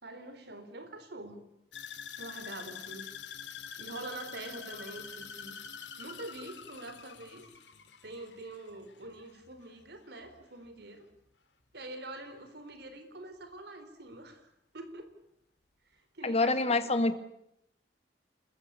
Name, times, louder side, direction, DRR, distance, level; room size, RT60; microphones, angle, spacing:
voice 1, 0.0-1.4 2.2-3.0 3.8-5.6 6.0-7.5 8.0-11.0 11.7-15.1 15.9-17.0, right 2 dB, 65° right, 9 dB, 4.1 m, -45 dB
sound 1, 1.7-9.9 10.2-10.7 11.1-11.2, left 7 dB, 85° left, 2.7 m, -46 dB
voice 2, 16.2-17.1, left 2 dB, 35° left, 10 dB, 1.9 m, -26 dB
28.5 x 14.5 x 9.8 m, 0.77 s
head